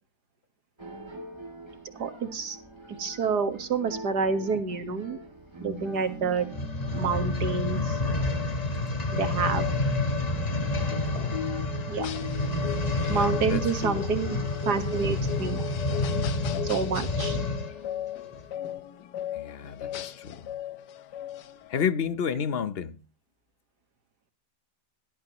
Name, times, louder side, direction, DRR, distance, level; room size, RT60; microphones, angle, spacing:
sound 1, 0.8-15.8, right 1 dB, 15° right, 2.5 m, -45 dB
voice 1, 2.0-2.6 3.0-5.2 5.6-6.5 7.0-8.0 9.1-9.7 11.9-12.1 13.1-15.6 16.7-17.4, right 5 dB, 80° right, 2.1 m, -28 dB
sound 2, 6.4-17.8 18.4-18.5, left 2 dB, 30° left, 1.1 m, -29 dB
sound 3, 10.9-21.8, left 10 dB, 90° left, 1.5 m, -38 dB
voice 2, 13.0-14.1 19.3-20.5 21.7-23.0, left 7 dB, 50° left, 0.8 m, -31 dB
17.0 x 12.0 x 3.0 m
omnidirectional pair, 1.7 m